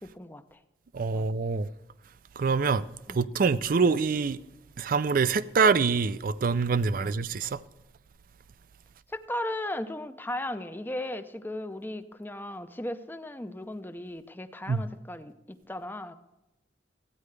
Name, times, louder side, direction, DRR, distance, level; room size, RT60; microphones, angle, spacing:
voice 1, 0.0-0.6 1.1-1.3 3.1-3.2 7.0-7.2 9.1-16.2, left 1 dB, 10° left, 0.5 m, -36 dB
voice 2, 0.9-1.7 2.4-2.8 3.1-4.4 4.8-7.6 14.7-14.8, right 5 dB, 50° right, 0.4 m, -25 dB
14.5 x 9.4 x 3.3 m
head